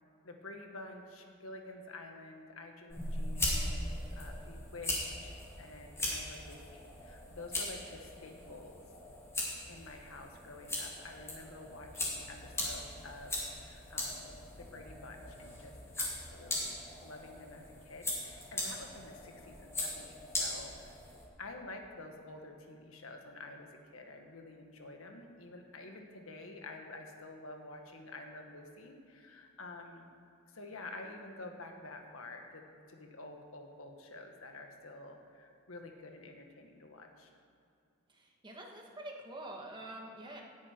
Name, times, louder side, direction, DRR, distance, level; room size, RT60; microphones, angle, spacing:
voice 1, 0.2-3.8 4.1-8.9 9.7-20.1 20.4-21.0 21.4-30.1 30.5-37.3, left 2 dB, 80° left, 4 dB, 1.5 m, -49 dB
sound 1, 2.9-21.2, left 1 dB, 15° left, 2.4 m, -39 dB
voice 2, 38.1-40.4, right 1 dB, 20° right, 0 dB, 1.6 m, -46 dB
17.5 x 9.9 x 4.5 m, 2.5 s
head